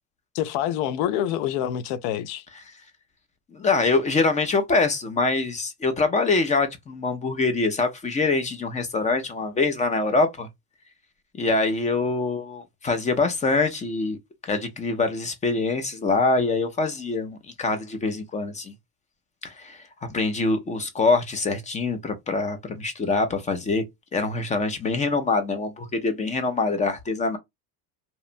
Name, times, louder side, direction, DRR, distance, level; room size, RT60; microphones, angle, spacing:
voice 1, 0.3-2.4, left 11 dB, 80° left, 0.5 m, -26 dB
voice 2, 3.5-10.5 11.3-14.2 14.4-18.7 19.4-19.8 20.1-23.8 24.1-27.4, left 3 dB, 20° left, 0.3 m, -24 dB
2.9 x 2.1 x 2.4 m
cardioid pair, 120°, 45 cm